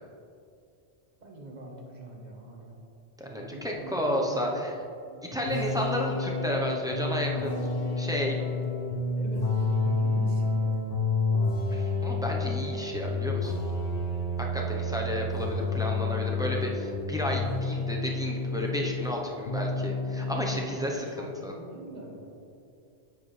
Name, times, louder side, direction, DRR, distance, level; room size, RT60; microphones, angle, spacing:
voice 1, 1.2-2.8 3.3-4.6 5.0-5.5 9.2-10.8 15.8-16.0 20.4-22.3, right 2 dB, 45° right, 0 dB, 1.3 m, -44 dB
voice 2, 3.2-4.7 5.3-8.4 11.7-13.5 14.5-21.5, equal, 5° right, -1 dB, 0.7 m, -32 dB
sound 1, 5.4-19.2 19.5-20.6, left 3 dB, 65° left, 1.1 m, -29 dB
9.6 x 7.6 x 3.3 m, 2.6 s
omnidirectional pair, 1.1 m